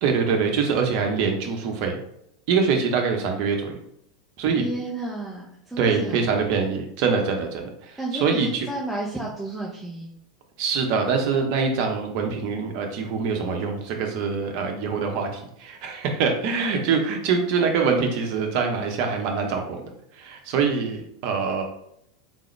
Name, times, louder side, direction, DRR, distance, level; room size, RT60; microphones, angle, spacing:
voice 1, 0.0-2.0 2.5-3.8 4.4-4.7 5.8-8.7 10.6-19.9 20.2-21.6, right 5 dB, 55° right, 3 dB, 0.9 m, -24 dB
voice 2, 4.5-6.4 8.0-10.1, right 2 dB, 5° right, -4 dB, 0.8 m, -32 dB
3.9 x 3.5 x 3.2 m, 0.74 s
hypercardioid pair, 90°, 3 cm